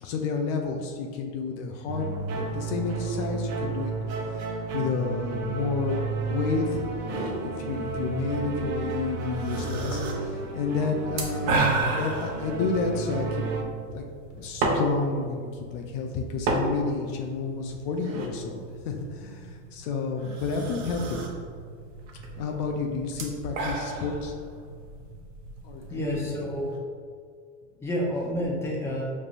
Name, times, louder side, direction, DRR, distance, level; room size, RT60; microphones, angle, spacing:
voice 1, 0.0-2.1 2.3-3.9 4.7-6.0 6.3-13.4 13.9-14.0 14.3-21.2 22.4-24.3 25.6-26.4, left 4 dB, 65° left, 2 dB, 0.6 m, -30 dB
sound 1, 1.9-13.6, right 4 dB, 45° right, 0.7 m, -32 dB
sound 2, 7.1-26.8, right 3 dB, 80° right, 0.9 m, -34 dB
voice 2, 25.9-26.6 27.8-29.0, equal, 5° left, -4 dB, 0.8 m, -29 dB
5.1 x 3.2 x 2.5 m, 2.1 s
supercardioid pair, 120°, 36 cm